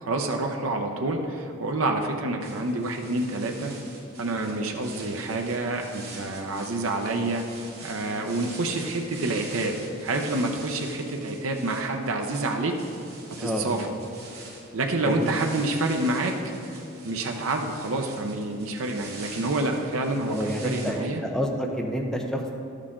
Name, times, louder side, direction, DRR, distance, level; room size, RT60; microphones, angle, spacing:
voice 1, 0.0-3.7 4.2-9.8 10.0-12.7 13.4-13.9 14.7-16.5 17.0-21.2, right 2 dB, 85° right, 3 dB, 0.7 m, -28 dB
sound 1, 2.4-20.9, right 3 dB, 50° right, 2.2 m, -45 dB
voice 2, 13.4-13.8 15.0-15.3 20.3-22.5, equal, 5° left, 1 dB, 0.7 m, -29 dB
11.5 x 6.5 x 3.7 m, 2.7 s
head